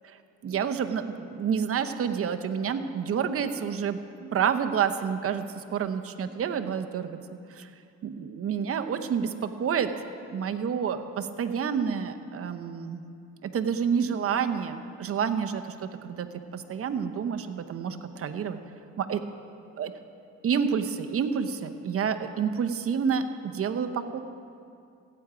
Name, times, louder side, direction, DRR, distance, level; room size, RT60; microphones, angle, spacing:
voice 1, 0.4-7.2 7.5-7.7 8.0-9.9 10.3-13.0 13.4-16.3 16.5-18.6 19.0-19.2 19.8-19.9 20.4-24.2, right 7 dB, 50° right, 7 dB, 0.8 m, -29 dB
15.5 x 8.8 x 5.0 m, 2.4 s
cardioid pair, 90°, 30 cm